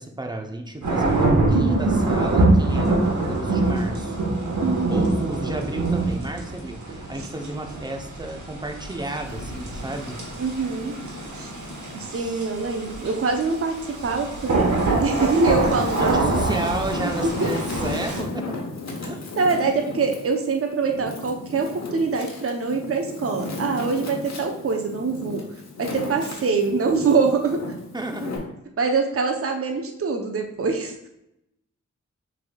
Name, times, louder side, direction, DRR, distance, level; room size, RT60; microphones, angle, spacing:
voice 1, 0.0-4.2 4.9-10.2 11.9-12.5 16.0-18.4 19.0-19.2 19.6-20.0 26.2-26.5 27.9-28.3, right 1 dB, 15° right, 4 dB, 0.7 m, -32 dB
sound 1, 0.8-18.2, right 2 dB, 75° right, 1.2 m, -24 dB
voice 2, 4.6-5.1 10.4-10.9 11.3-11.5 11.9-13.8 14.0-16.3 17.2-17.5 19.4-25.4 25.8-27.6 28.8-30.9, right 4 dB, 50° right, 3 dB, 0.7 m, -24 dB
Wind, 9.2-12.0 12.5-13.8 14.4-28.4, left 3 dB, 65° left, 1.0 m, -35 dB
6.0 x 3.5 x 2.3 m, 0.82 s
cardioid pair, 55°, 30 cm